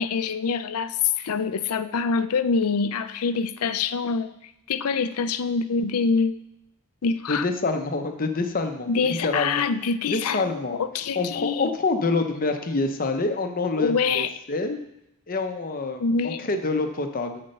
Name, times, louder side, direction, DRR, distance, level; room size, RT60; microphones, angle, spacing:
voice 1, 0.0-4.3 4.7-6.4 7.0-7.5 8.9-11.7 13.8-14.3 16.0-16.5, left 5 dB, 85° left, 13 dB, 0.5 m, -25 dB
voice 2, 7.3-9.6 10.1-10.8 11.2-14.8 15.3-17.4, left 3 dB, 40° left, 6 dB, 0.8 m, -26 dB
8.5 x 4.3 x 6.6 m, 0.85 s
head